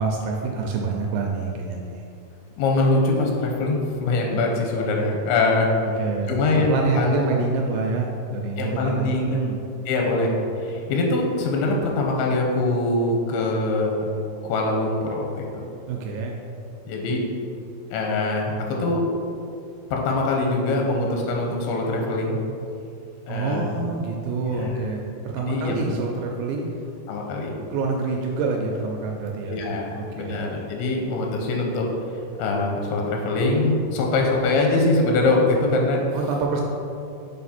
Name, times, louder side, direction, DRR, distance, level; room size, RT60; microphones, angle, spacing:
voice 1, 0.0-2.1 5.8-9.6 15.9-16.3 23.3-26.7 27.7-29.6 29.9-30.4 36.1-36.6, right 4 dB, 80° right, 0 dB, 2.1 m, -27 dB
voice 2, 2.6-5.7 6.3-7.3 8.6-9.4 9.9-14.0 14.5-15.7 16.9-17.2 17.9-19.0 19.9-22.4 23.3-23.8 24.4-24.7 25.4-25.9 27.1-27.6 29.5-31.8 32.4-36.0, left 2 dB, 90° left, 0 dB, 2.6 m, -23 dB
5.7 x 4.6 x 4.2 m, 2.6 s
omnidirectional pair, 4.4 m